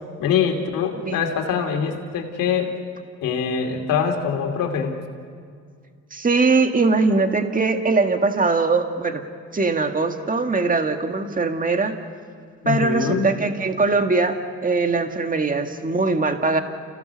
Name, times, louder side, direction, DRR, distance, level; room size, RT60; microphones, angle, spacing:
voice 1, 0.2-2.8 3.2-4.9 12.6-13.2, left 7 dB, 85° left, 2 dB, 2.6 m, -23 dB
voice 2, 6.1-9.2 9.5-12.0 12.7-16.6, right 3 dB, 25° right, 6 dB, 1.8 m, -21 dB
30.0 x 16.5 x 6.9 m, 2.1 s
supercardioid pair, 65°, 32 cm